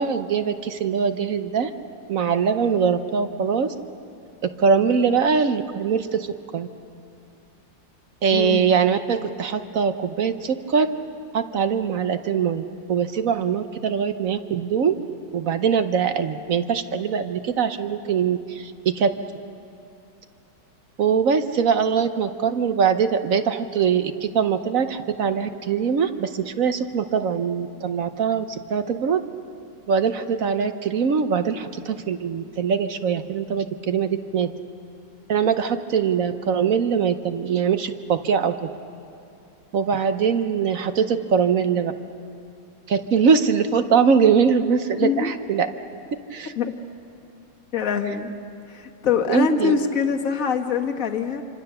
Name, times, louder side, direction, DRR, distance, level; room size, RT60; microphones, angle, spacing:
voice 1, 0.0-1.7 2.1-3.7 4.6-6.3 6.5-6.7 8.2-10.9 11.3-12.6 12.9-15.0 15.3-19.1 21.0-29.2 29.9-34.5 35.3-38.5 39.7-41.9 42.9-45.7 46.3-46.5 49.3-49.7, right 6 dB, 55° right, 9 dB, 1.0 m, -22 dB
voice 2, 8.3-8.7 45.0-45.3 46.6-46.7 47.7-48.3 48.7-51.4, left 6 dB, 50° left, 4 dB, 1.7 m, -24 dB
27.5 x 25.5 x 6.8 m, 2.5 s
omnidirectional pair, 2.0 m